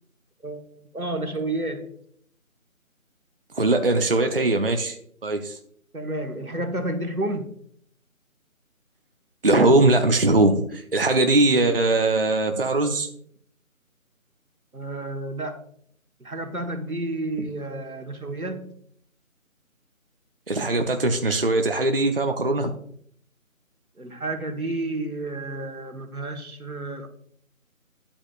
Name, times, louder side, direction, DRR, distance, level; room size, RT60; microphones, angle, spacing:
voice 1, 0.4-1.9 5.9-7.6 14.7-15.6 16.2-18.7 24.0-27.1, right 2 dB, 90° right, 1.4 m, -31 dB
voice 2, 3.5-5.0 5.2-5.6 9.4-13.1 17.4-17.5 20.5-22.7, right 2 dB, 40° right, 0.6 m, -21 dB
10.0 x 8.5 x 2.4 m
figure-of-eight pair, 160°, 42 cm